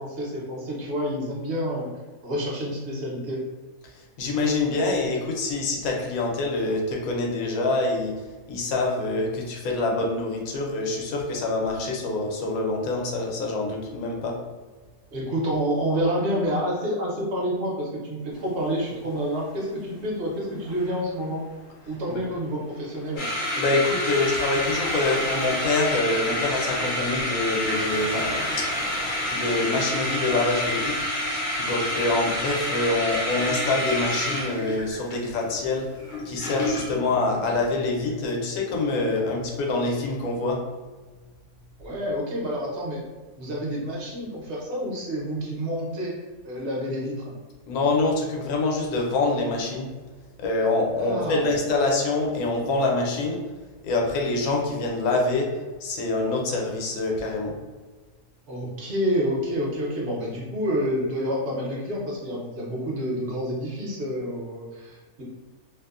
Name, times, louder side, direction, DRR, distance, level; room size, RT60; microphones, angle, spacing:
voice 1, 0.0-1.9 2.2-3.4 15.1-21.4 21.9-23.3 41.8-43.0 43.4-46.1 46.4-47.3 51.0-51.5 58.5-65.2, equal, 55° right, -3 dB, 0.9 m, -28 dB
voice 2, 4.2-8.1 8.5-14.4 22.1-22.2 23.6-28.6 29.3-31.1 31.6-35.9 36.2-40.6 47.7-49.9 50.4-53.4 53.8-55.5 55.8-57.6, left 2 dB, 75° left, 0 dB, 1.0 m, -25 dB
Waves surf, 18.3-36.1, equal, 5° left, 0.3 m, -44 dB
sound 1, 23.2-37.0, left 1 dB, 55° left, 0.5 m, -28 dB
2.7 x 2.1 x 2.3 m, 1.3 s
omnidirectional pair, 1.6 m